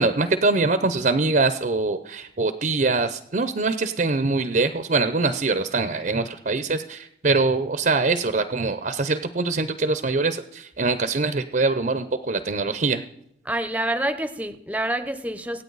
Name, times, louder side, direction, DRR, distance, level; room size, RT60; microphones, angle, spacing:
voice 1, 0.0-13.0, right 3 dB, 50° right, 10 dB, 0.6 m, -23 dB
voice 2, 13.4-15.6, right 1 dB, 10° right, 11 dB, 0.7 m, -27 dB
25.5 x 8.8 x 4.0 m, 0.73 s
head